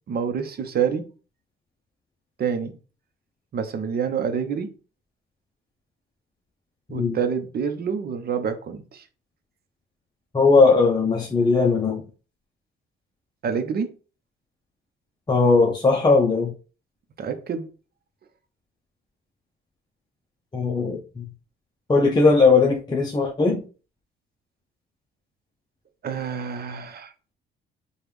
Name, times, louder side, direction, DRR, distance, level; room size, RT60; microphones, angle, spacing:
voice 1, 0.1-1.1 2.4-2.8 3.5-4.7 6.9-9.1 13.4-13.9 17.2-17.7 26.0-27.1, right 7 dB, 50° right, 0.8 m, -27 dB
voice 2, 10.3-12.0 15.3-16.5 20.5-21.3 21.9-23.6, left 4 dB, 20° left, 0.6 m, -19 dB
5.0 x 2.3 x 3.2 m
cardioid pair, 90°, 20 cm